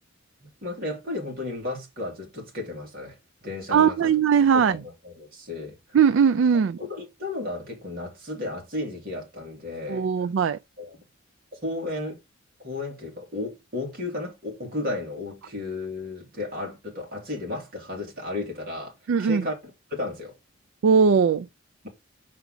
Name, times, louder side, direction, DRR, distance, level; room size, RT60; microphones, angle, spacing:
voice 1, 0.4-3.1 3.4-4.1 4.5-6.0 6.8-10.3 10.8-11.0 11.5-12.2 12.6-18.9 19.2-20.3, left 2 dB, 45° right, 2.7 m, -34 dB
voice 2, 3.7-4.8 5.9-6.8 9.9-10.6 19.1-19.4 20.8-21.5, right 6 dB, 65° right, 0.3 m, -19 dB
6.0 x 4.5 x 3.8 m
head